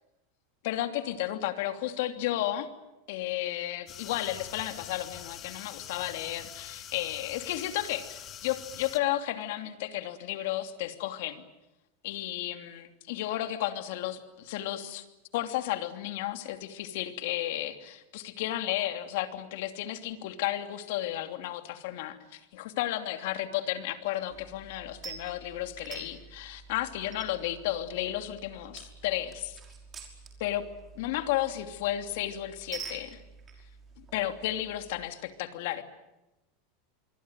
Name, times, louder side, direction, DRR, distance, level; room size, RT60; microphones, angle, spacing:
voice 1, 0.6-2.7 3.1-11.4 12.0-15.0 15.3-29.6 30.4-30.6 30.9-33.2 34.1-35.8, left 13 dB, 65° left, 8 dB, 2.9 m, -33 dB
sound 1, 3.9-9.0, left 9 dB, 30° left, 2.0 m, -45 dB
sound 2, 24.3-35.1, right 5 dB, 25° right, 5.7 m, -48 dB
26.0 x 24.0 x 9.2 m, 0.98 s
supercardioid pair, 140°, 0 cm